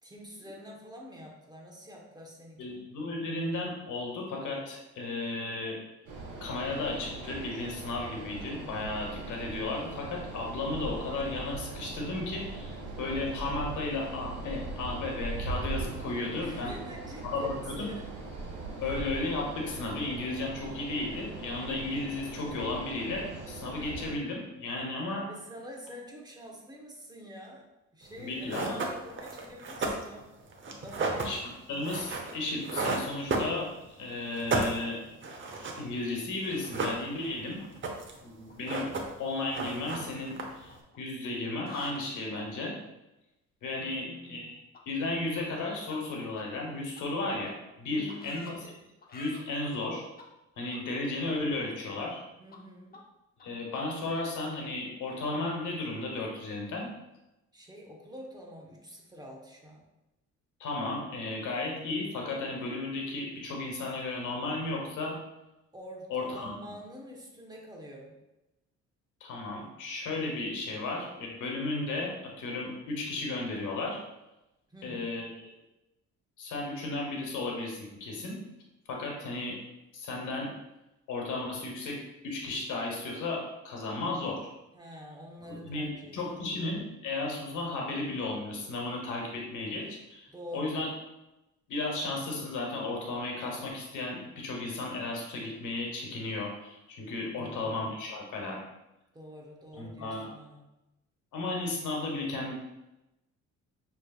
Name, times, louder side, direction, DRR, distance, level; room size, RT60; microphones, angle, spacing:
voice 1, 0.0-2.8 16.4-17.5 17.7-18.1 18.8-19.0 25.3-27.7 27.9-30.3 30.8-31.4 43.8-44.5 47.9-48.3 52.4-53.0 57.5-59.9 65.7-68.2 74.7-75.1 84.7-86.5 90.3-90.9 97.3-97.9 99.1-100.7, equal, 15° right, -2 dB, 1.0 m, -47 dB
voice 2, 2.6-5.8 6.4-16.8 17.2-17.9 18.8-25.3 28.2-28.8 31.2-31.4 31.7-33.7 34.0-35.0 35.7-37.6 38.2-38.9 39.2-42.8 43.6-44.6 44.9-48.7 49.1-50.0 50.6-52.2 53.4-56.9 60.6-65.2 66.1-66.5 69.2-74.0 74.8-75.5 76.4-78.4 78.9-79.6 79.9-80.5 81.1-82.0 82.2-84.5 85.5-90.9 91.7-98.6 99.8-100.3 101.3-102.6, left 2 dB, 85° left, 0 dB, 1.2 m, -34 dB
sound 1, 6.1-24.1, right 2 dB, 85° right, 1.0 m, -40 dB
sound 2, 28.1-28.2 28.5-34.0 34.3-35.9 36.1-36.2 36.4-37.4 37.6-38.2 38.5-39.3 39.5-40.7, right 3 dB, 40° right, 0.8 m, -33 dB
sound 3, 36.7-38.2 38.4-38.7 39.7-41.3 41.5-42.0 44.7-44.8 45.4-45.5 45.9-46.0 46.4-46.5 46.9-47.0 47.5-47.6 48.1-48.5 49.0-49.4 50.2-50.3 50.7-50.8 51.2-51.3 51.7-52.2 52.5-52.6 52.9-53.0 53.4-53.5 53.7-53.8 54.1-54.2, left 3 dB, 30° left, 0.7 m, -48 dB
6.3 x 3.2 x 2.4 m, 0.96 s
cardioid pair, 90°, 30 cm